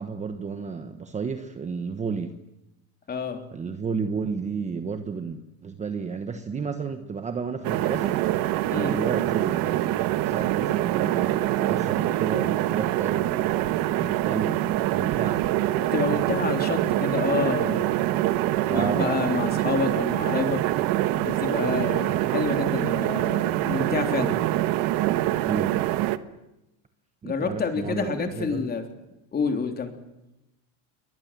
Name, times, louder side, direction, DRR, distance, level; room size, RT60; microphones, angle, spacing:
voice 1, 0.0-2.4 3.5-8.2 8.7-15.6 18.7-19.2 25.4-25.8 27.2-28.7, right 5 dB, 15° right, 8 dB, 1.2 m, -32 dB
voice 2, 3.1-3.4 8.7-8.9 15.8-18.0 18.7-20.6 21.2-24.4 27.2-28.8 29.3-29.9, left 5 dB, 20° left, 6 dB, 3.5 m, -28 dB
sound 1, 7.6-26.2, right 15 dB, 50° right, 1.5 m, -25 dB
28.5 x 24.0 x 7.6 m, 0.93 s
cardioid pair, 170°, 43 cm